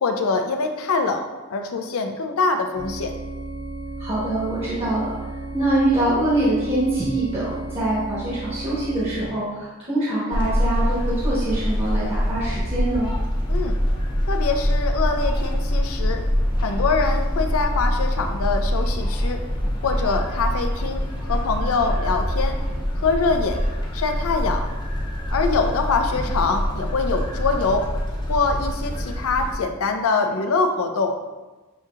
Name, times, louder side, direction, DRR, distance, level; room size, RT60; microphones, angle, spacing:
voice 1, 0.0-1.3 1.5-3.1 13.5-13.8 14.3-16.2 16.6-19.4 19.8-22.6 23.0-23.6 23.9-24.6 25.3-27.9 28.3-31.2, left 4 dB, 70° left, 5 dB, 0.5 m, -24 dB
sound 1, 2.7-9.3, right 2 dB, 80° right, 0.8 m, -34 dB
voice 2, 4.0-5.1 5.5-13.1, right 1 dB, 30° right, -9 dB, 1.0 m, -24 dB
sound 2, 10.3-29.5, equal, 20° left, 0.6 m, -24 dB
6.9 x 2.8 x 2.4 m, 1.2 s
head